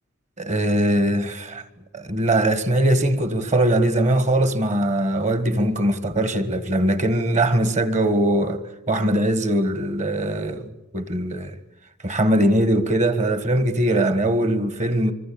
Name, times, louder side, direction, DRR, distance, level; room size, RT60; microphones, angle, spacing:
voice 1, 0.4-1.6 1.9-11.5 12.0-15.1, right 1 dB, 35° right, 1.7 m, -21 dB
25.5 x 24.5 x 8.7 m
head